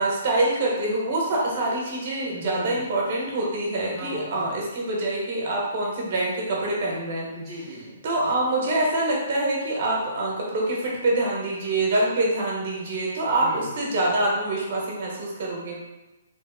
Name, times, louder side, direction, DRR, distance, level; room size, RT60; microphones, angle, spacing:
voice 1, 0.0-7.3 8.0-15.8, right 2 dB, 50° right, -3 dB, 0.9 m, -25 dB
voice 2, 2.3-2.8 3.9-4.5 7.3-8.0 13.4-13.7, equal, 10° right, -9 dB, 0.6 m, -38 dB
3.1 x 2.0 x 3.4 m, 1.0 s
hypercardioid pair, 170°, 0 cm